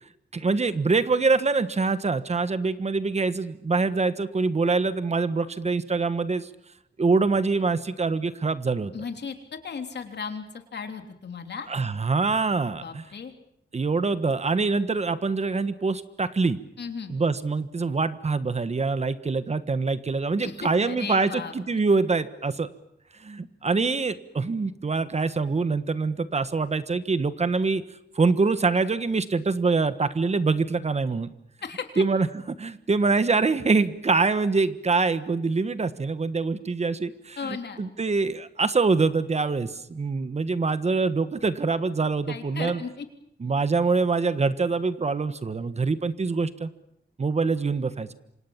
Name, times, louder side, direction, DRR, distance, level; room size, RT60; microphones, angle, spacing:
voice 1, 0.3-6.5 7.0-8.9 11.7-13.0 13.7-16.6 17.1-22.7 23.2-27.8 28.1-31.3 32.0-32.3 32.6-42.8 43.4-46.7 47.2-48.1, right 4 dB, 40° right, 12 dB, 1.3 m, -24 dB
voice 2, 8.9-11.7 12.8-13.3 16.8-17.1 20.4-21.8 31.6-32.0 37.4-37.8 42.3-43.0, left 5 dB, 70° left, 6 dB, 3.4 m, -36 dB
28.0 x 26.0 x 7.3 m, 0.75 s
wide cardioid pair, 135°, 18 cm